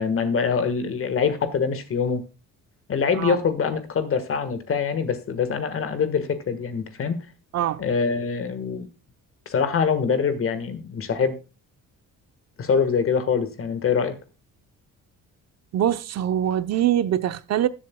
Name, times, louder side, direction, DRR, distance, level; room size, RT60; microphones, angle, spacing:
voice 1, 0.0-2.2 2.9-7.3 7.8-8.9 9.4-11.4 12.6-14.2, left 6 dB, 40° left, 1.5 m, -24 dB
voice 2, 7.5-7.8 15.7-17.7, right 11 dB, 50° right, 0.7 m, -23 dB
20.5 x 7.4 x 2.2 m
cardioid pair, 165°, 33 cm